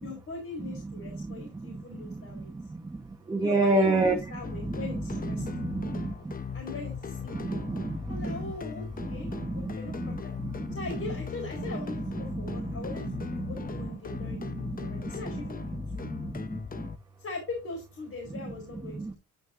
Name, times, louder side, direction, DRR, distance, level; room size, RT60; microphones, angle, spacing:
voice 1, 0.0-2.5 3.4-5.6 6.5-7.6 8.1-10.3 10.7-13.0 13.5-15.6 16.0-16.1 17.2-19.2, left 3 dB, 50° left, 4.1 m, -40 dB
voice 2, 2.0-3.0 3.3-4.1 4.6-6.1 7.3-8.3 9.0-10.7 12.3-12.9 13.3-13.7 14.2-15.4 16.0-16.9 18.9-19.1, right 2 dB, 15° right, 1.1 m, -31 dB
sound 1, 4.4-17.0, left 6 dB, 30° left, 0.8 m, -38 dB
10.0 x 9.0 x 2.6 m
cardioid pair, 90°, 30 cm